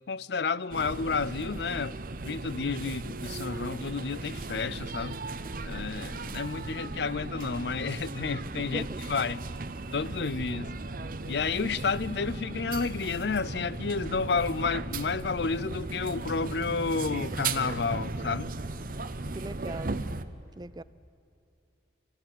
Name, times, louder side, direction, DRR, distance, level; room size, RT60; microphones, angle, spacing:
voice 1, 0.1-2.0 2.2-5.2 5.6-9.4 9.9-10.7 11.3-18.5, left 4 dB, 60° left, 0.5 m, -31 dB
sound 1, 0.7-20.2, right 3 dB, 50° right, 0.9 m, -36 dB
voice 2, 8.7-9.1 19.3-20.0 20.6-20.8, right 2 dB, 20° right, 0.5 m, -39 dB
26.5 x 15.0 x 9.4 m
head